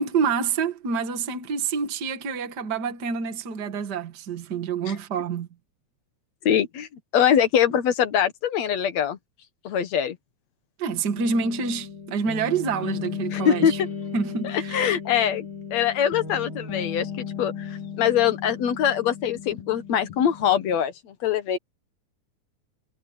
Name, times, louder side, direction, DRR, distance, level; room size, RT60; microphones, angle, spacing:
voice 1, 0.0-5.5 10.8-13.8 14.1-14.8, right 5 dB, 40° right, 2.2 m, -27 dB
voice 2, 6.5-6.9 7.1-9.2 9.6-10.2 13.3-13.7 14.4-15.5 15.7-21.6, left 9 dB, 65° left, 2.6 m, -23 dB
sound 1, 11.1-20.8, left 6 dB, 80° left, 4.5 m, -36 dB
omnidirectional pair, 3.4 m